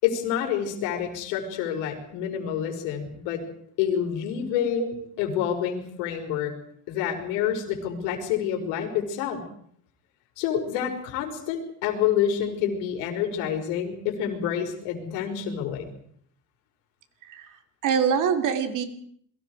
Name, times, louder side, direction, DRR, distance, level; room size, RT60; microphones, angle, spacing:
voice 1, 0.0-3.4 3.8-6.5 6.9-9.4 10.4-15.9, left 9 dB, 90° left, 3 dB, 5.9 m, -28 dB
voice 2, 17.2-17.6 17.8-18.8, right 7 dB, 40° right, 7 dB, 3.2 m, -25 dB
29.0 x 22.5 x 4.9 m, 0.64 s
cardioid pair, 165°, 46 cm